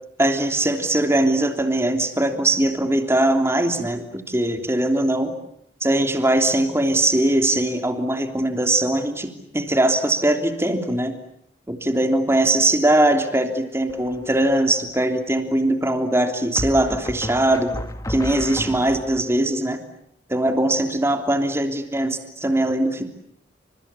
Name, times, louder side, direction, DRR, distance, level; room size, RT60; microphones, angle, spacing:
voice 1, 0.2-5.3 5.8-11.1 11.7-17.7 18.1-19.8 20.3-23.0, right 1 dB, 15° right, 5 dB, 3.2 m, -21 dB
sound 1, 13.9-14.4 16.6-19.2, left 1 dB, 20° left, 1.9 m, -32 dB
29.5 x 27.5 x 7.1 m, 0.72 s
head